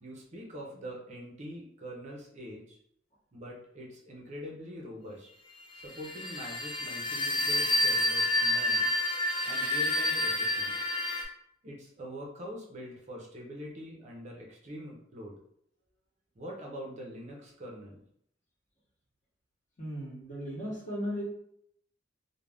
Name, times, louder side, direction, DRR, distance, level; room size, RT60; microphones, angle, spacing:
voice 1, 0.0-2.8 3.3-5.3 5.7-8.9 9.4-10.8 11.6-15.4 16.4-18.0, equal, 35° right, -1 dB, 0.5 m, -44 dB
sound 1, 5.9-11.2, left 1 dB, 25° left, 0.4 m, -29 dB
voice 2, 19.8-21.2, equal, 40° left, -5 dB, 1.0 m, -36 dB
2.4 x 2.0 x 3.3 m, 0.71 s
head